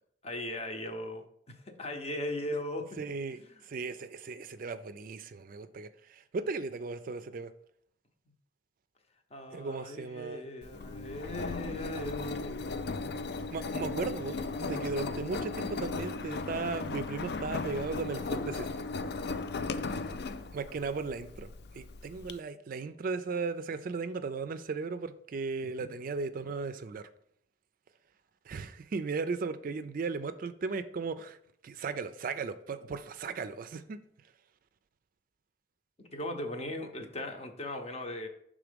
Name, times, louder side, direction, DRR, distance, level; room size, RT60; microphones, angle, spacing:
voice 1, 0.2-1.2 1.7-2.8 3.3-3.5 9.3-12.7 36.1-38.3, left 1 dB, 35° left, 5 dB, 0.8 m, -38 dB
voice 2, 3.0-7.5 9.5-10.4 13.5-18.9 20.5-27.1 28.5-31.4 31.6-34.0, right 4 dB, 50° right, 11 dB, 0.4 m, -36 dB
Engine, 10.6-22.3, left 3 dB, 60° left, 0.4 m, -36 dB
6.0 x 3.7 x 5.0 m, 0.70 s
head